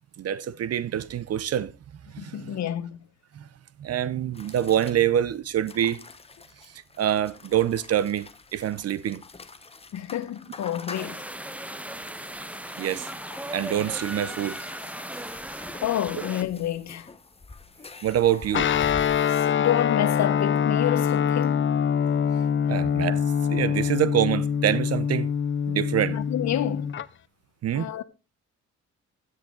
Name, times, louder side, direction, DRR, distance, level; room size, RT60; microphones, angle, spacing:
voice 1, 0.2-1.7 2.1-2.6 3.4-3.5 3.8-6.0 7.0-9.2 12.8-13.1 13.5-14.6 18.0-18.7 22.7-23.2 23.5-25.3 25.7-26.2 27.6-27.9, right 10 dB, 55° right, 0.7 m, -25 dB
voice 2, 2.2-3.0 9.9-11.2 15.8-17.1 19.2-21.7 26.1-26.9 27.7-28.0, left 11 dB, 65° left, 1.0 m, -29 dB
sound 1, 4.3-19.5, left 3 dB, 20° left, 1.0 m, -45 dB
sound 2, 10.9-16.4, right 1 dB, 5° right, 0.8 m, -37 dB
Guitar, 18.5-27.1, left 8 dB, 40° left, 0.6 m, -24 dB
13.0 x 8.2 x 3.9 m
cardioid pair, 90°, 30 cm